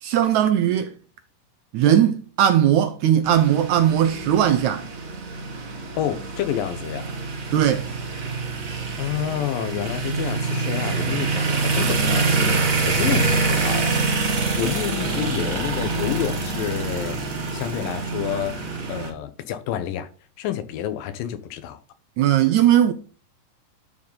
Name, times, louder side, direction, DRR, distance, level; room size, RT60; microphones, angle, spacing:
voice 1, 0.0-0.9 1.7-4.9 7.5-7.9 22.2-22.9, right 10 dB, 80° right, 1.7 m, -18 dB
sound 1, 3.2-19.1, right 3 dB, 60° right, 0.8 m, -25 dB
voice 2, 6.0-7.1 9.0-14.0 14.3-17.2 17.5-18.6 18.9-20.1 20.4-21.8, left 11 dB, 85° left, 2.6 m, -29 dB
11.5 x 4.8 x 3.9 m
omnidirectional pair, 3.9 m